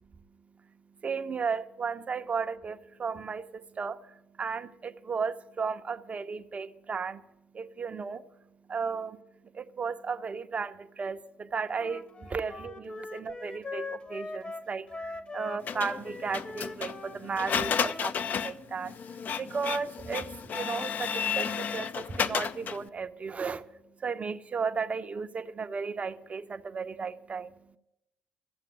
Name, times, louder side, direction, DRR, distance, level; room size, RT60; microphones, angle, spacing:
voice 1, 0.1-27.8, right 5 dB, 35° right, 0.7 m, -35 dB
Wind instrument woodwind instrument, 11.7-18.1, left 3 dB, 30° left, 1.0 m, -42 dB
Printer, 15.7-22.9, left 7 dB, 45° left, 0.5 m, -32 dB
14.5 x 7.4 x 9.1 m
figure-of-eight pair, 50°, 4 cm